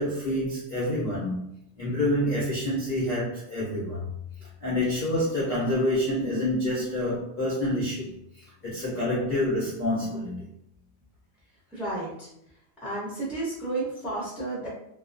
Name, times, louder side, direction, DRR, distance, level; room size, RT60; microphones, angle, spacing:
voice 1, 0.0-1.4 1.8-4.1 4.6-10.5, left 1 dB, 45° left, -9 dB, 0.7 m, -27 dB
voice 2, 11.7-12.3 12.8-14.7, right 2 dB, ahead, -7 dB, 0.7 m, -32 dB
2.3 x 2.1 x 2.5 m, 0.76 s
omnidirectional pair, 1.4 m